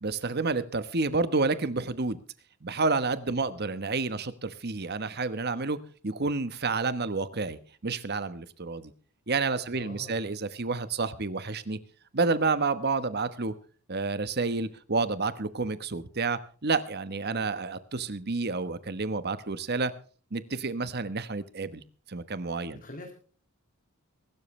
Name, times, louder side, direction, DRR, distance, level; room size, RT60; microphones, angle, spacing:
voice 1, 0.0-2.2 2.6-5.8 6.0-8.9 9.3-11.8 12.1-13.5 13.9-19.9 20.3-22.8, right 3 dB, 50° right, 13 dB, 1.1 m, -29 dB
voice 2, 9.7-10.2 17.3-17.5 22.8-23.1, left 1 dB, 40° left, 2 dB, 2.3 m, -44 dB
23.0 x 12.5 x 3.3 m, 0.39 s
head